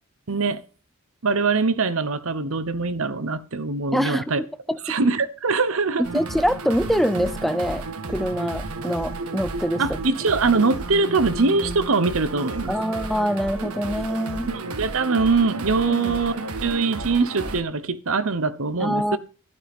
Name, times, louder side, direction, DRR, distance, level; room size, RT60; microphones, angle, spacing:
voice 1, 0.3-0.6 1.2-4.4 4.8-6.0 9.8-12.7 14.5-16.3 16.6-19.2, right 4 dB, 70° right, 0.9 m, -22 dB
voice 2, 3.9-4.8 6.1-9.8 12.7-14.5 16.0-16.2 18.8-19.2, equal, ahead, 0.6 m, -25 dB
sound 1, 6.0-17.6, right 2 dB, 90° right, 1.6 m, -32 dB
12.0 x 12.0 x 3.6 m
head